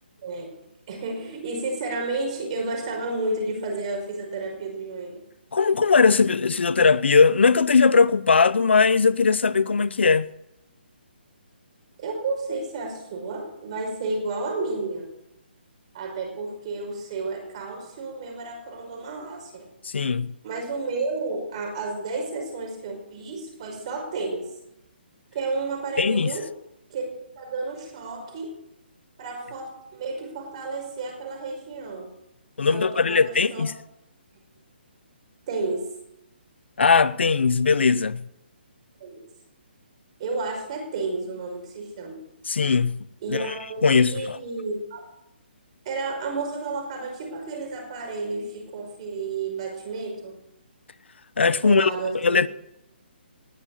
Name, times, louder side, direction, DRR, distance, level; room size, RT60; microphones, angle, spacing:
voice 1, 0.2-0.6 0.9-5.2 12.0-15.1 15.9-19.7 20.4-24.4 25.3-26.5 26.9-28.6 29.2-32.1 32.7-33.7 35.5-36.0 39.0-39.3 40.2-42.2 43.2-45.1 45.9-50.3 51.6-52.5, right 3 dB, 35° right, 5.5 m, -31 dB
voice 2, 5.5-10.3 19.8-20.3 26.0-26.3 32.6-33.7 36.8-38.2 42.5-43.0 43.3-43.4 43.8-44.4 51.4-52.5, left 5 dB, 80° left, 0.8 m, -19 dB
19.5 x 7.5 x 8.6 m
hypercardioid pair, 160°, 6 cm